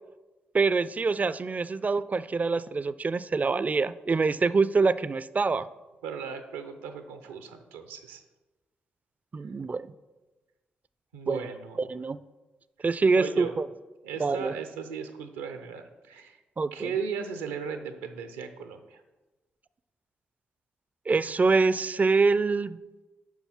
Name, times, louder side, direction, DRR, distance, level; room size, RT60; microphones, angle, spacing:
voice 1, 0.5-5.7 9.3-9.9 11.3-11.4 11.9-12.2 12.8-13.7 14.2-14.5 16.6-16.9 21.1-22.8, right 4 dB, 35° right, 16 dB, 0.4 m, -25 dB
voice 2, 6.0-8.2 11.1-11.9 12.8-12.9 13.1-13.6 14.0-16.4 16.7-19.0, right 6 dB, 90° right, 8 dB, 0.7 m, -37 dB
7.2 x 5.4 x 5.8 m, 1.2 s
hypercardioid pair, 40°, 5 cm